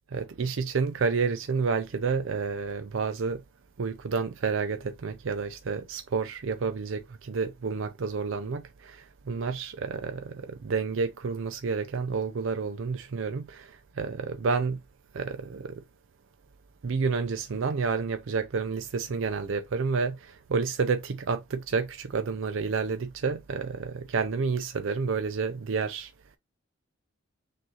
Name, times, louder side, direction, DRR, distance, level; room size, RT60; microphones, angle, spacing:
voice 1, 0.1-3.4 3.8-14.8 15.1-15.8 16.8-26.1, right 5 dB, 65° right, 0.4 m, -30 dB
6.2 x 2.6 x 2.9 m
head